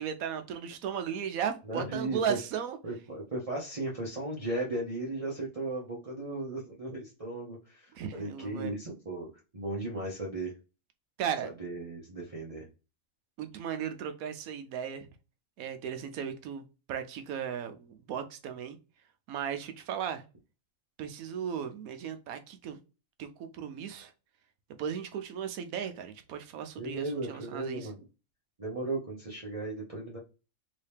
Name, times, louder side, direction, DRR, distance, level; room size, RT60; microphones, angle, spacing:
voice 1, 0.0-2.8 7.9-8.8 11.2-11.5 13.4-15.1 15.6-18.8 19.3-20.2 21.0-22.8 23.2-24.1 24.8-27.9, right 8 dB, 80° right, 8 dB, 1.1 m, -36 dB
voice 2, 1.6-2.4 2.8-10.5 11.4-12.7 26.8-28.0 28.6-30.2, right 2 dB, 30° right, -4 dB, 0.8 m, -36 dB
3.1 x 2.8 x 3.3 m, 0.31 s
omnidirectional pair, 1.5 m